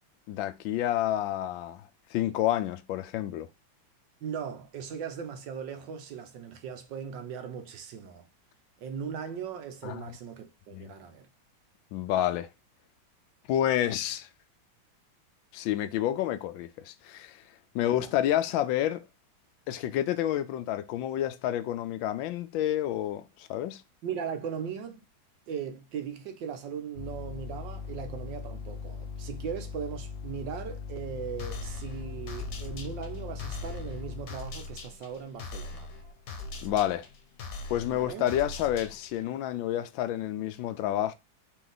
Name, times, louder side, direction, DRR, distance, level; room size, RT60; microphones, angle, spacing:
voice 1, 0.3-3.5 9.8-10.2 10.7-10.9 11.9-12.5 13.5-14.3 15.5-17.4 17.7-19.0 19.7-23.8 36.6-37.1 37.7-41.1, left 12 dB, 80° left, 1.3 m, -29 dB
voice 2, 4.2-8.3 8.8-11.3 17.8-18.2 24.0-25.0 25.5-35.9 37.9-38.3, right 7 dB, 70° right, 1.4 m, -38 dB
sound 1, 26.9-34.2, left 6 dB, 45° left, 1.0 m, -40 dB
sound 2, 31.4-39.3, left 3 dB, 65° left, 1.4 m, -42 dB
4.5 x 2.9 x 3.9 m
omnidirectional pair, 2.1 m